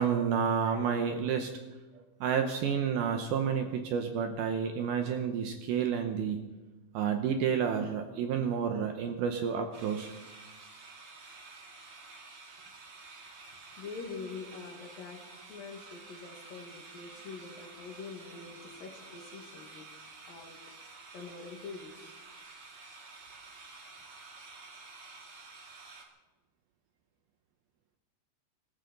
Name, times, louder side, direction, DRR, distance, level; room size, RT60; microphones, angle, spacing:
voice 1, 0.0-1.5 2.2-6.5 6.9-10.1, right 7 dB, 75° right, 6 dB, 2.4 m, -30 dB
sound 1, 9.7-26.0, right 3 dB, 45° right, 2.1 m, -51 dB
voice 2, 13.8-15.2 15.5-19.9 20.3-20.6 20.9-22.1, left 4 dB, 60° left, 2 dB, 3.2 m, -45 dB
25.0 x 14.5 x 3.9 m, 1.2 s
omnidirectional pair, 5.1 m